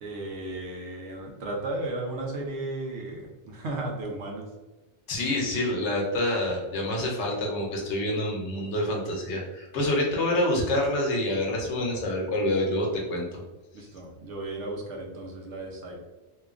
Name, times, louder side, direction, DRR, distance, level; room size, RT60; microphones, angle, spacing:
voice 1, 0.0-4.5 13.7-16.0, right 2 dB, 85° right, 0 dB, 1.0 m, -35 dB
voice 2, 5.1-13.4, left 1 dB, 85° left, -1 dB, 1.0 m, -27 dB
3.0 x 2.2 x 2.4 m, 1.1 s
omnidirectional pair, 1.2 m